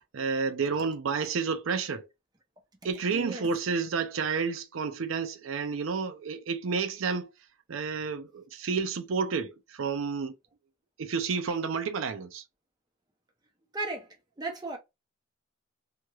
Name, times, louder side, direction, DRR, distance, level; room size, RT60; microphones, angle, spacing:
voice 1, 0.1-2.1 2.8-7.3 7.7-10.3 11.0-12.4, right 5 dB, 75° right, 0.5 m, -30 dB
voice 2, 3.1-3.5 13.7-14.8, right 2 dB, 20° right, 0.6 m, -36 dB
3.0 x 2.9 x 2.3 m
head